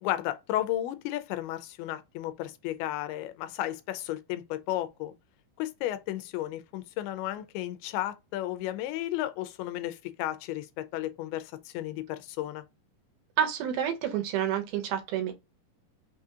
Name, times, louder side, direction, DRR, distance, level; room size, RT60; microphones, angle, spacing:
voice 1, 0.0-5.1 5.6-12.6, left 14 dB, 90° left, 2.5 m, -33 dB
voice 2, 13.4-15.3, right 9 dB, 80° right, 2.7 m, -29 dB
6.0 x 2.8 x 2.4 m
omnidirectional pair, 4.4 m